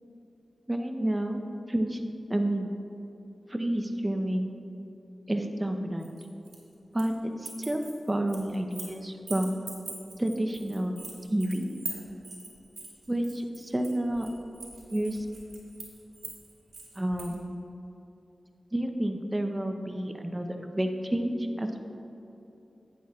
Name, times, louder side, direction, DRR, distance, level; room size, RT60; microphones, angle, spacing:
voice 1, 0.7-2.0 2.3-2.7 3.5-4.5 5.3-6.1 6.9-9.5 10.2-10.9 11.3-11.7 13.1-14.3 14.9-15.3 17.0-17.4 18.7-21.8, right 1 dB, 20° right, 5 dB, 0.8 m, -30 dB
sound 1, 6.0-7.1 7.4-9.0 9.3-17.3, right 3 dB, 75° right, 2.1 m, -43 dB
11.5 x 9.2 x 2.4 m, 2.9 s
cardioid pair, 50°, 0 cm